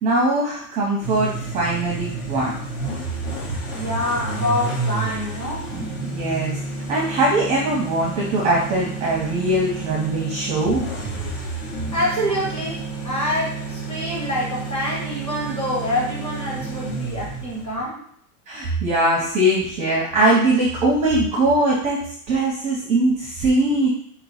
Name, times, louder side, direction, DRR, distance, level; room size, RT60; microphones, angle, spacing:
voice 1, 0.0-2.5 5.7-6.6 6.9-10.9 18.5-23.9, right 1 dB, 15° right, -4 dB, 0.7 m, -21 dB
sound 1, 1.0-17.8, right 3 dB, 60° left, 1.7 m, -30 dB
voice 2, 3.7-5.8 11.9-18.0, left 1 dB, 10° left, -6 dB, 1.7 m, -26 dB
4.2 x 3.0 x 4.2 m, 0.67 s
supercardioid pair, 160°, 46 cm